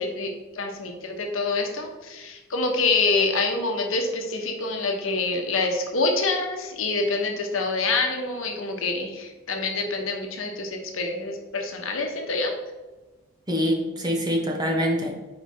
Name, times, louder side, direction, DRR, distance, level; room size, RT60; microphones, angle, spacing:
voice 1, 0.0-12.5, left 3 dB, 80° left, 3 dB, 1.0 m, -26 dB
voice 2, 13.5-15.2, equal, 20° right, 0 dB, 0.8 m, -25 dB
4.9 x 4.8 x 4.2 m, 1.1 s
head